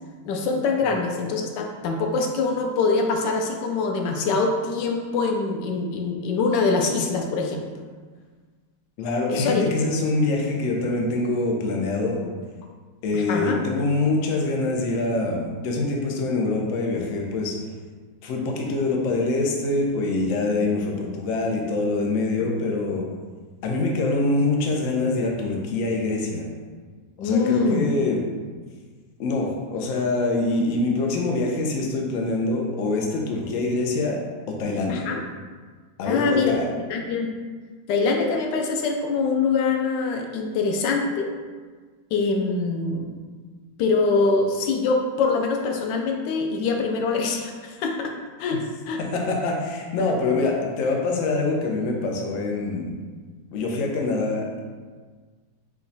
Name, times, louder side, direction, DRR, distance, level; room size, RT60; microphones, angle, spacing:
voice 1, 0.2-7.6 9.3-9.6 13.1-13.6 22.4-22.5 27.2-27.9 34.9-35.2 36.1-36.6 36.9-37.3 37.9-41.3 42.1-43.1 43.8-48.1 48.4-48.6 48.9-49.0, left 4 dB, 90° left, 2 dB, 1.3 m, -24 dB
voice 2, 9.0-12.3 13.0-17.6 18.2-23.0 23.6-26.5 27.2-28.2 29.2-34.2 34.5-35.1 36.0-36.7 48.5-48.6 49.0-52.9 53.5-54.6, left 2 dB, 60° left, 0 dB, 0.9 m, -25 dB
4.8 x 2.3 x 4.0 m, 1.5 s
omnidirectional pair, 1.9 m